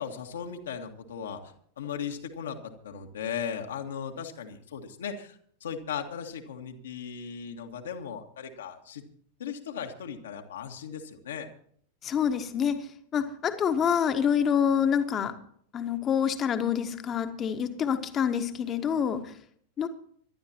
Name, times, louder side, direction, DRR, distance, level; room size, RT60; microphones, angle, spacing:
voice 1, 0.0-9.0 9.4-11.5, left 7 dB, 65° left, 3 dB, 1.8 m, -37 dB
voice 2, 12.0-12.9 13.1-15.3 15.7-19.3 19.8-19.9, left 8 dB, 25° left, 8 dB, 1.5 m, -27 dB
25.0 x 12.0 x 2.9 m, 0.62 s
figure-of-eight pair, 90°, 0 cm